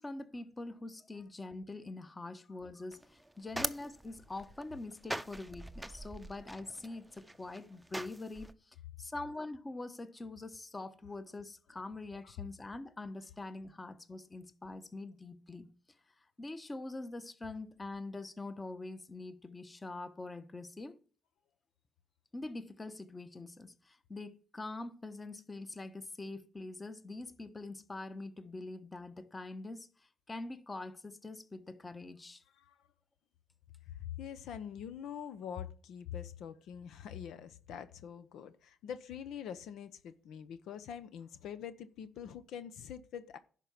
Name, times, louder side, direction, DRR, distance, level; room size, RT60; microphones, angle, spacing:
voice 1, 0.0-15.7 16.4-21.0 22.3-32.4, left 2 dB, 20° left, 1.1 m, -44 dB
sound 1, 2.9-8.5, right 1 dB, 5° right, 0.7 m, -43 dB
voice 2, 32.6-32.9 33.9-43.4, left 8 dB, 75° left, 0.8 m, -44 dB
11.0 x 4.6 x 7.1 m
cardioid pair, 90°, 0 cm